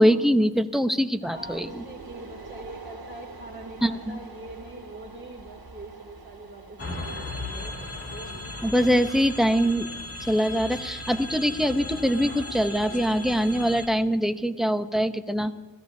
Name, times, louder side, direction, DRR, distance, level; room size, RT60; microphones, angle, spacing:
voice 1, 0.0-1.8 3.8-4.2 8.6-9.9 10.3-15.5, equal, ahead, 8 dB, 0.7 m, -23 dB
voice 2, 1.2-7.7, right 2 dB, 20° right, -1 dB, 2.8 m, -43 dB
sound 1, 1.3-14.4, right 3 dB, 50° right, 2.4 m, -47 dB
sound 2, 6.8-13.9, left 2 dB, 30° left, 2.3 m, -36 dB
28.5 x 17.5 x 2.7 m, 1.3 s
wide cardioid pair, 105°, 47 cm